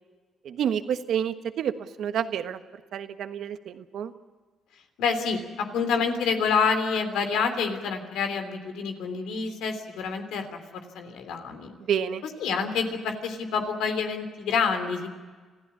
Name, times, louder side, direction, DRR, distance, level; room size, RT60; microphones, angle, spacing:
voice 1, 0.4-2.6 2.9-4.1 11.8-12.2, right 8 dB, 70° right, 9 dB, 1.4 m, -29 dB
voice 2, 5.0-10.5 10.9-11.7 12.4-15.1, left 5 dB, 85° left, 6 dB, 3.2 m, -27 dB
26.5 x 15.0 x 8.6 m, 1.4 s
cardioid pair, 90°, 0 cm